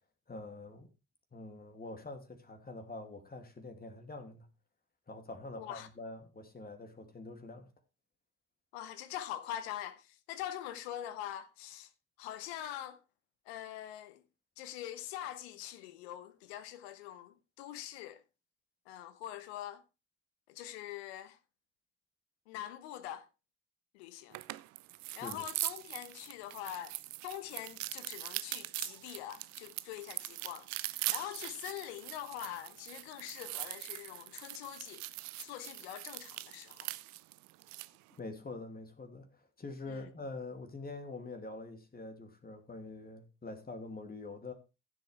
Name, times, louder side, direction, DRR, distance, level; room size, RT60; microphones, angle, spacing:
voice 1, 0.3-0.9 1.3-4.5 5.1-7.7 25.2-25.4 38.2-44.5, left 2 dB, 30° left, 2.7 m, -45 dB
voice 2, 5.6-5.9 8.7-11.9 12.2-13.0 13.4-14.2 14.6-18.2 18.9-19.8 20.5-21.4 22.5-23.3 23.9-24.4 25.1-26.9 27.2-36.9 39.9-40.1, left 12 dB, 75° left, 1.1 m, -44 dB
Garlic roll and peel, 24.3-38.0, right 19 dB, 60° right, 0.6 m, -42 dB
15.5 x 7.5 x 3.4 m
figure-of-eight pair, 45°, 33 cm